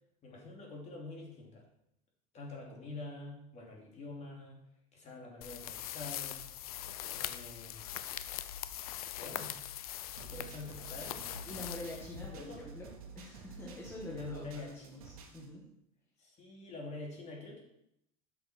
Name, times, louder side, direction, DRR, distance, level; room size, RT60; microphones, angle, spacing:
voice 1, 0.2-1.6 2.3-4.6 4.9-6.4 7.1-7.8 9.2-9.6 10.2-11.2 12.3-12.7 14.0-14.9 16.2-17.6, left 2 dB, 40° left, -1 dB, 2.8 m, -46 dB
sound 1, 5.4-12.6, left 12 dB, 85° left, 0.5 m, -42 dB
sound 2, 10.2-15.5, right 5 dB, 80° right, 1.4 m, -51 dB
voice 2, 11.5-15.7, left 1 dB, 15° left, -4 dB, 2.0 m, -46 dB
7.8 x 6.3 x 4.4 m, 0.77 s
hypercardioid pair, 95°, 18 cm